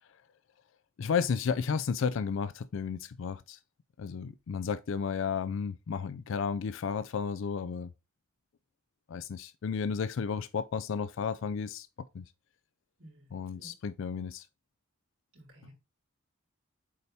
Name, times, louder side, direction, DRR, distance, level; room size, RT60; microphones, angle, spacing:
voice 1, 1.0-3.6 4.0-7.9 9.1-11.9 12.1-12.2 13.3-14.5, left 6 dB, 60° left, 0.4 m, -33 dB
voice 2, 13.0-13.7 15.3-15.7, equal, 70° right, 4.3 m, -54 dB
8.4 x 4.1 x 3.4 m
head